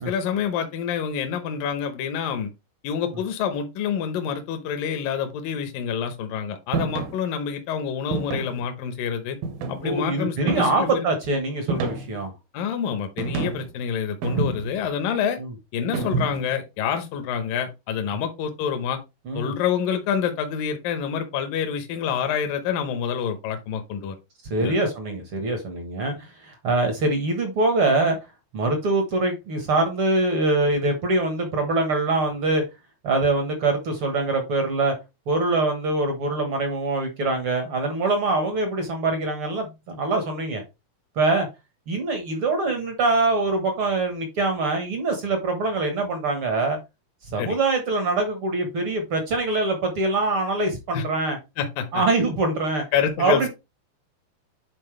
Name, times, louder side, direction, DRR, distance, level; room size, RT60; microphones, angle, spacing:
voice 1, 0.0-2.5 2.8-9.4 9.7-11.1 12.5-15.4 15.7-19.0 19.3-24.2 24.6-24.8 47.4-47.6 50.9-51.0 51.6-52.0 52.9-53.5, left 7 dB, 70° left, 2.5 m, -27 dB
sound 1, 6.7-7.2 8.1-8.6 9.4-10.0 10.5-10.9 11.7-12.3 13.2-13.7 14.2-14.8 15.9-16.5, right 4 dB, 75° right, 2.9 m, -28 dB
voice 2, 9.8-12.3 15.4-15.5 15.9-16.1 19.2-19.5 24.5-28.2 28.5-32.6 33.0-34.9 35.3-40.6 41.1-41.5 41.9-46.8 47.3-51.4 51.9-52.8 53.2-53.5, right 2 dB, 60° right, 1.4 m, -24 dB
9.9 x 4.3 x 3.2 m
omnidirectional pair, 4.4 m